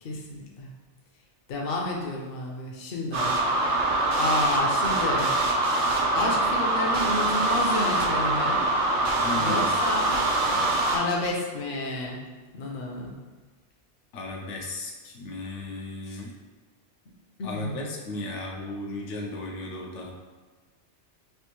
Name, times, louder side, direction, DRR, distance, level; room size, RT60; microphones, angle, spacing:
voice 1, 0.0-0.7 1.5-3.3 4.2-5.3 6.1-8.6 9.4-10.1 10.9-12.2 12.5-13.2 16.1-16.2 17.4-17.8, left 2 dB, 60° left, -1 dB, 0.7 m, -30 dB
sound 1, 3.1-11.0, right 2 dB, 80° right, 0.9 m, -24 dB
voice 2, 9.2-9.7 10.4-10.9 14.1-16.3 17.4-20.1, left 2 dB, 85° left, -1 dB, 0.9 m, -35 dB
3.4 x 2.5 x 3.0 m, 1.3 s
omnidirectional pair, 1.2 m